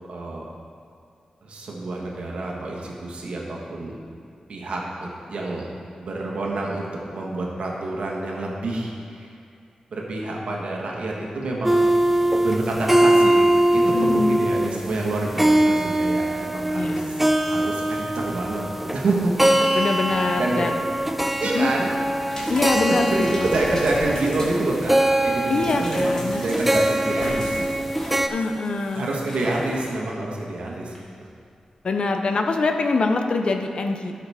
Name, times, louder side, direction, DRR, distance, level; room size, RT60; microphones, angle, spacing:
voice 1, 0.1-0.4 1.4-4.0 4.5-5.7 6.0-9.3 9.9-11.8 12.3-17.1 17.4-18.6 18.9-19.3 19.9-20.8 21.4-21.9 22.7-27.9 28.3-28.4 28.9-31.3, right 2 dB, 75° right, -2 dB, 1.3 m, -28 dB
sound 1, 11.6-28.3, right 1 dB, 5° right, 0.4 m, -22 dB
voice 2, 13.9-14.4 16.7-17.3 19.7-20.8 21.5-21.7 22.5-23.5 25.5-26.4 28.3-29.1 31.8-34.3, left 3 dB, 55° left, 5 dB, 0.6 m, -24 dB
sound 2, 22.2-29.9 30.9-31.0, equal, 30° left, 1.7 m, -36 dB
12.5 x 5.8 x 3.5 m, 2.4 s
wide cardioid pair, 145°, 2 cm